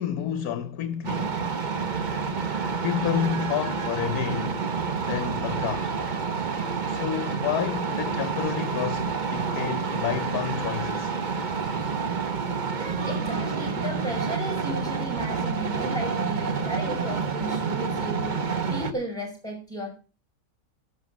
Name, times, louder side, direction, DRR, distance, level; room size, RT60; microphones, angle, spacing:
voice 1, 0.0-1.3 2.8-4.6 5.1-6.0 6.9-11.2, left 10 dB, 75° left, 1.3 m, -30 dB
sound 1, 1.0-18.9, right 5 dB, 35° right, 0.9 m, -28 dB
voice 2, 13.0-19.9, right 1 dB, ahead, 5.7 m, -34 dB
11.5 x 7.5 x 7.1 m
omnidirectional pair, 1.6 m